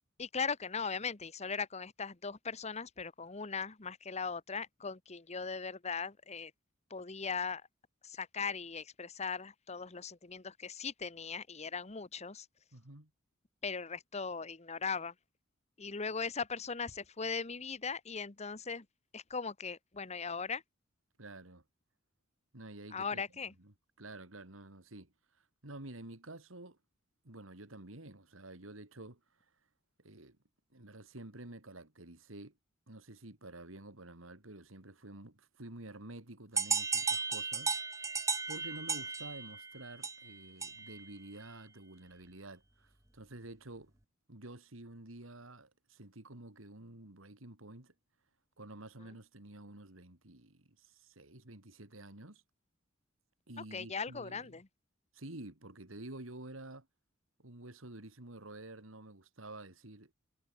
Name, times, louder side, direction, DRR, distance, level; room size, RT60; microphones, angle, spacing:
voice 1, 0.2-6.5 6.9-7.6 8.0-12.5 13.6-15.1 15.8-18.9 19.1-20.6 22.9-23.5 53.6-54.7, left 5 dB, 35° left, 1.2 m, -39 dB
voice 2, 12.7-13.1 21.2-21.6 22.5-23.2 23.6-26.8 27.2-29.2 30.0-30.4 30.7-32.5 32.9-37.8 38.5-43.9 44.3-47.9 48.6-52.4 53.5-54.6 55.1-56.9 57.4-60.1, right 2 dB, 90° right, 3.1 m, -50 dB
sound 1, 36.6-41.1, right 4 dB, 15° right, 1.7 m, -35 dB
head